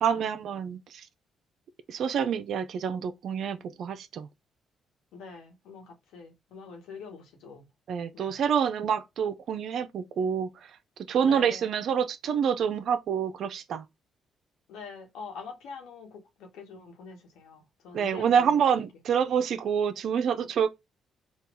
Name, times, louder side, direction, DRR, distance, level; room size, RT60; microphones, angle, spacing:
voice 1, 0.0-0.8 1.9-4.3 7.9-10.5 11.1-13.8 17.9-20.7, right 7 dB, 65° right, 0.5 m, -27 dB
voice 2, 5.1-7.7 8.1-8.4 11.2-11.7 14.7-18.6, left 5 dB, 90° left, 1.4 m, -45 dB
4.2 x 2.3 x 3.6 m
cardioid pair, 90°, 0 cm